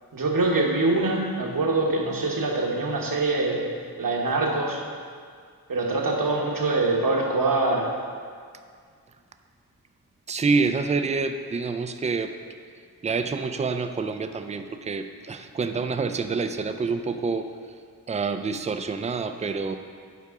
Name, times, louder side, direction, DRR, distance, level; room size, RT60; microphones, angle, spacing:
voice 1, 0.1-3.7 4.0-4.8 5.7-7.9, right 2 dB, 55° right, 0 dB, 1.1 m, -24 dB
voice 2, 10.3-12.3 13.0-17.5 18.1-19.8, right 4 dB, 20° right, 8 dB, 0.3 m, -27 dB
8.4 x 4.8 x 3.6 m, 2.1 s
wide cardioid pair, 70°, 39 cm